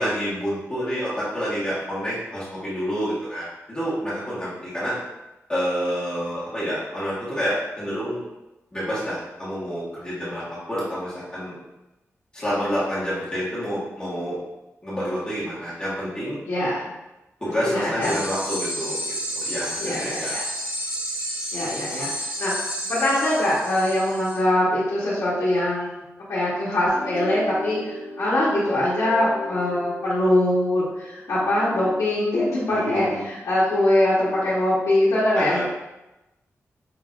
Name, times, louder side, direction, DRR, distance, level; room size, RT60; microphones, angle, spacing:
voice 1, 0.0-5.0 5.5-8.2 8.7-10.4 10.7-11.6 12.3-14.4 14.8-16.4 17.4-20.3 32.7-33.2 35.4-35.6, equal, 15° left, -10 dB, 1.6 m, -28 dB
voice 2, 16.5-16.8 17.6-18.2 19.8-20.4 21.5-22.1 22.4-22.5 22.8-26.0 26.3-35.6, left 1 dB, 85° left, -10 dB, 1.3 m, -22 dB
sound 1, 18.0-24.4, equal, 25° right, 1.2 m, -31 dB
sound 2, 26.9-32.0, left 2 dB, 45° left, 0.6 m, -36 dB
5.6 x 3.7 x 2.6 m, 0.99 s
wide cardioid pair, 140°, 5 cm